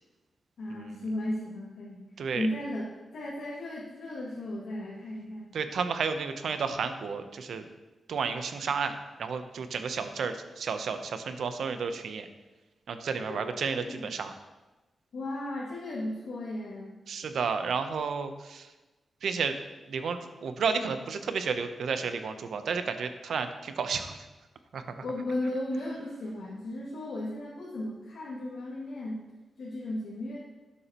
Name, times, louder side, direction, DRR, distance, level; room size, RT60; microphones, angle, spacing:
voice 1, 0.6-2.0 2.3-5.5 13.1-14.1 15.1-17.0 25.0-29.3 29.6-30.4, left 1 dB, 80° left, -7 dB, 2.2 m, -35 dB
voice 2, 5.5-7.7 8.1-8.9 9.2-12.3 12.9-14.3 17.1-18.7 19.2-19.6 19.9-24.2 24.7-24.8, right 5 dB, 75° right, 8 dB, 0.7 m, -32 dB
12.0 x 8.4 x 3.0 m, 1.1 s
wide cardioid pair, 155°, 0 cm